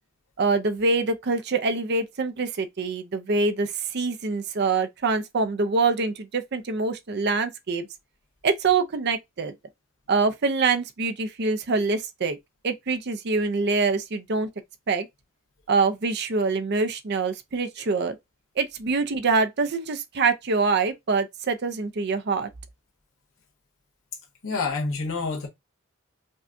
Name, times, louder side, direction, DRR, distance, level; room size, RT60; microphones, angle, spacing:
voice 1, 0.4-7.9 8.4-9.5 10.1-12.4 12.6-14.5 14.9-15.1 15.7-18.2 18.6-22.5, right 4 dB, 55° right, 0.5 m, -25 dB
voice 2, 24.4-25.5, left 4 dB, 75° left, 1.6 m, -28 dB
5.3 x 2.3 x 2.5 m
head